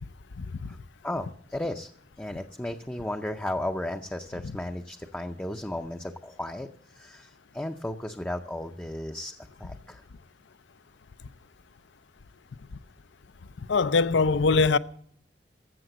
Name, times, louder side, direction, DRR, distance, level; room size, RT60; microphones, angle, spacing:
voice 1, 0.4-0.7 4.4-4.5 13.7-14.8, left 4 dB, 75° left, 0.5 m, -22 dB
voice 2, 1.0-1.9 2.2-6.7 6.9-9.3 9.6-10.0, left 1 dB, 10° left, 0.5 m, -34 dB
14.0 x 7.4 x 7.7 m
head